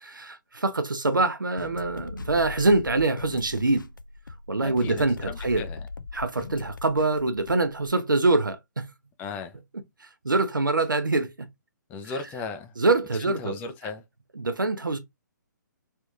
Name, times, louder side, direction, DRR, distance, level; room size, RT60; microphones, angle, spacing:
voice 1, 0.0-3.9 4.5-5.6 6.1-8.8 10.0-11.5 12.0-12.1 12.8-13.6 14.4-15.0, right 2 dB, 80° right, 0.8 m, -24 dB
sound 1, 1.6-7.9, left 4 dB, 80° left, 0.4 m, -40 dB
voice 2, 4.6-5.8 9.2-9.5 11.9-12.7 13.2-14.0, left 4 dB, 15° left, 0.5 m, -36 dB
3.4 x 3.0 x 2.3 m
figure-of-eight pair, 135°, 11 cm